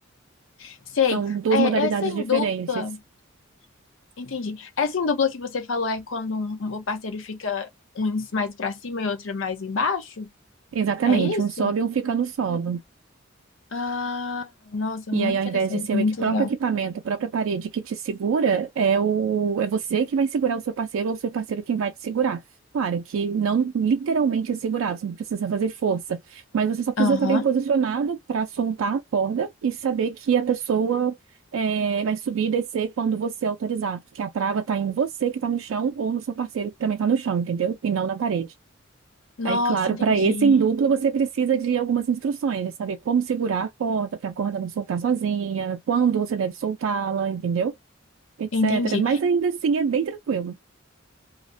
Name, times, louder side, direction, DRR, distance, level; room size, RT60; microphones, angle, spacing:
voice 1, 0.6-1.2 1.5-3.0 4.2-7.7 7.9-10.3 11.1-11.7 12.4-12.6 13.7-16.5 27.0-27.5 39.4-40.6 48.5-49.2, left 4 dB, 70° left, 0.6 m, -27 dB
voice 2, 1.1-2.7 10.7-12.8 15.1-22.4 22.7-31.1 31.5-38.5 39.4-47.7 48.4-50.6, right 6 dB, 80° right, 0.3 m, -24 dB
2.4 x 2.1 x 2.5 m
head